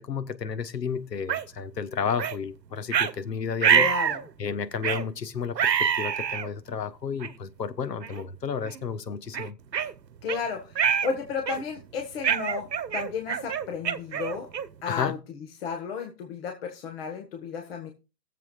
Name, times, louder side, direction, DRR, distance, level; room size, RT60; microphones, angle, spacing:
voice 1, 0.0-3.9 4.4-9.5 14.9-15.1, left 6 dB, 75° left, 1.3 m, -32 dB
sound 1, 1.3-1.4 2.2-2.4 2.9-3.1 3.6-4.2 4.8-5.1 5.6-6.5 7.2-7.3 8.0-8.2 8.7-8.8 9.3-10.4 10.8-11.1 11.5-11.8 12.2-14.8, right 8 dB, 75° right, 1.0 m, -25 dB
voice 2, 3.7-4.3 10.2-10.7 11.0-14.5 14.8-15.2 15.6-17.9, left 6 dB, 35° left, 1.6 m, -33 dB
21.0 x 7.5 x 2.4 m
hypercardioid pair, 140°, 50 cm